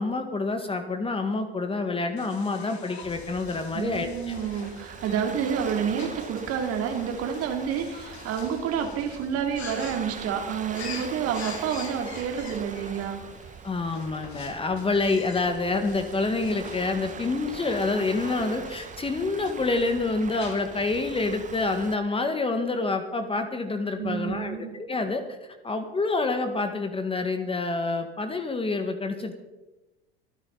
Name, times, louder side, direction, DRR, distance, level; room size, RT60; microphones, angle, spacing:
voice 1, 0.0-4.3 13.6-25.4 25.6-29.3, left 3 dB, 15° left, 6 dB, 1.8 m, -27 dB
sound 1, 2.2-21.0, left 6 dB, 85° left, 2.2 m, -46 dB
Waves surf, 3.0-22.0, right 6 dB, 25° right, 1.2 m, -42 dB
voice 2, 3.7-13.2 24.0-24.8, right 7 dB, 50° right, 4 dB, 2.9 m, -29 dB
25.0 x 9.7 x 4.1 m, 1.1 s
hypercardioid pair, 85°, 31 cm